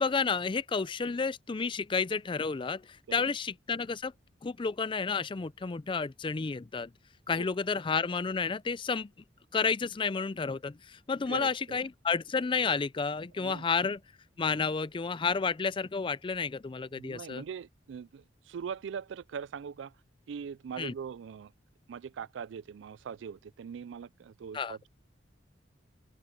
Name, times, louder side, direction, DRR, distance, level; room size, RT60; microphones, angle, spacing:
voice 1, 0.0-2.8 3.1-4.1 4.4-6.9 7.3-9.1 9.5-14.0 14.4-17.4 20.8-20.9 24.5-24.8, left 5 dB, 25° left, 0.4 m, -31 dB
voice 2, 11.3-11.8 13.4-13.6 16.9-19.9 20.3-21.5 21.9-24.9, right 7 dB, 80° right, 0.3 m, -41 dB
open air
head